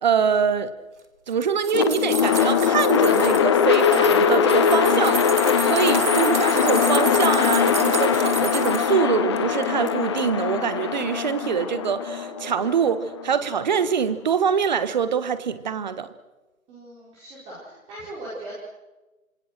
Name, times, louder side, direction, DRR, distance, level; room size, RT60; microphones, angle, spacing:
voice 1, 0.0-0.7 1.3-16.1, right 7 dB, 30° right, 1.4 m, -24 dB
sound 1, 1.3-3.4 3.7-8.9 9.4-9.9 10.2-10.3, right 5 dB, 55° right, 3.1 m, -31 dB
sound 2, 1.7-13.8, left 7 dB, 20° left, 1.0 m, -21 dB
voice 2, 16.7-18.5, right 1 dB, 15° right, 4.5 m, -39 dB
27.0 x 26.5 x 6.6 m
figure-of-eight pair, 150°, 43 cm